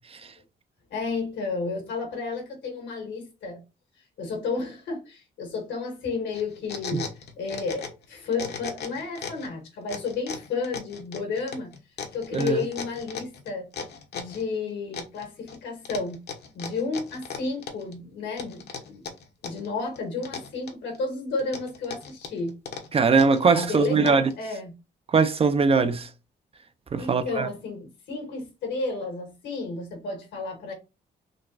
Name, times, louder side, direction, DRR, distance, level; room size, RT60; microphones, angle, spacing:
voice 1, 0.9-3.6 4.2-7.1 7.4-11.7 12.1-13.7 14.1-16.2 16.5-19.0 19.4-22.6 23.5-24.7 27.0-30.7, left 4 dB, 85° left, 1.5 m, -32 dB
sound 1, 6.3-8.1 8.3-9.5 9.9-14.4 14.9-15.6 15.9-18.0 18.4-19.7 20.0-21.0 21.4-24.3, left 6 dB, 65° left, 0.8 m, -37 dB
voice 2, 12.3-12.6 22.9-24.3 25.1-26.1 26.9-27.5, right 4 dB, 35° right, 0.4 m, -21 dB
3.9 x 2.3 x 2.5 m
cardioid pair, 85°, 18 cm